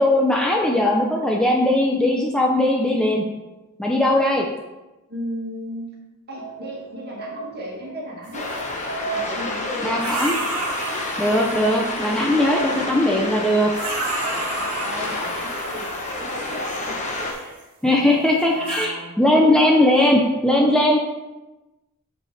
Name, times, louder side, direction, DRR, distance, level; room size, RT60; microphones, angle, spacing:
voice 1, 0.0-3.2 3.8-4.5 9.8-10.4 11.2-13.7 17.8-21.0, left 1 dB, 5° left, -1 dB, 0.5 m, -19 dB
voice 2, 5.1-6.0 6.3-8.7 9.0-10.1 14.6-17.6 18.0-19.5 20.6-20.8, equal, 45° right, -3 dB, 2.0 m, -35 dB
sound 1, 6.3-17.2 17.6-17.7 18.3-18.8, right 4 dB, 80° left, 1.6 m, -39 dB
sound 2, 8.2-8.8 10.0-12.9 13.7-17.6 18.4-18.9, right 3 dB, 80° right, 1.6 m, -32 dB
sound 3, 8.3-17.3, left 2 dB, 35° left, 1.0 m, -29 dB
6.9 x 5.4 x 4.2 m, 1.1 s
head